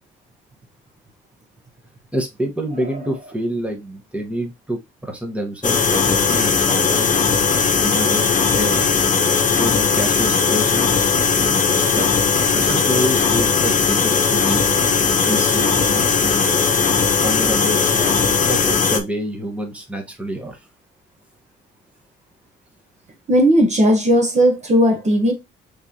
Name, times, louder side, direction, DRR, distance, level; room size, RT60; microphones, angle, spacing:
voice 1, 2.1-7.2 7.8-9.0 9.6-11.1 11.4-12.1 12.5-14.7 15.2-16.5 17.2-20.6, right 1 dB, 5° right, 1.2 m, -27 dB
sound 1, 5.6-19.0, left 5 dB, 40° left, 1.0 m, -18 dB
voice 2, 23.3-25.3, equal, 35° right, 1.1 m, -16 dB
4.6 x 3.7 x 2.8 m
cardioid pair, 90°, 20 cm